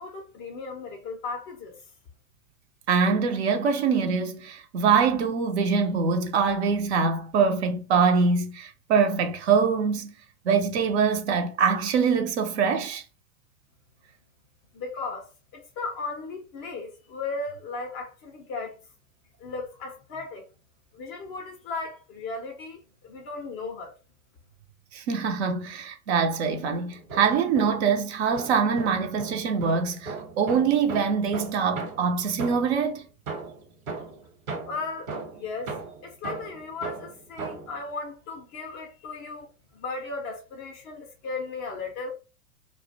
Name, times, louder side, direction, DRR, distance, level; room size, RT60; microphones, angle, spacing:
voice 1, 0.0-1.7 14.7-15.3 15.5-18.8 19.4-20.4 20.9-23.9 34.7-35.7 36.0-42.1, left 3 dB, 25° left, 0.4 m, -36 dB
voice 2, 2.9-10.1 10.4-13.0 24.9-33.1, right 5 dB, 50° right, 0.5 m, -24 dB
sound 1, 26.9-28.0 28.4-32.9 33.3-37.8, right 4 dB, 65° right, 1.0 m, -37 dB
2.3 x 2.1 x 2.6 m
figure-of-eight pair, 95°, 44 cm